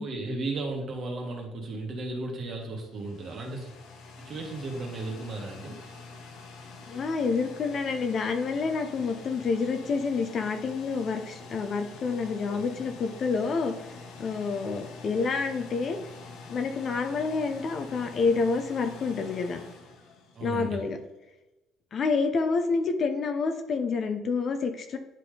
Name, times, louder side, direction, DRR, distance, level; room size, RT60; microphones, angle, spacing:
voice 1, 0.0-3.7 4.2-5.8 12.5-12.7 20.3-20.8, right 2 dB, 45° right, 1 dB, 1.6 m, -35 dB
sound 1, 2.7-20.8, left 4 dB, 90° left, 1.2 m, -46 dB
voice 2, 6.9-13.7 14.2-16.0 16.5-19.6 20.4-21.0 21.9-25.0, left 4 dB, 40° left, 7 dB, 0.7 m, -28 dB
10.0 x 3.8 x 3.3 m, 1.0 s
cardioid pair, 140°, 0 cm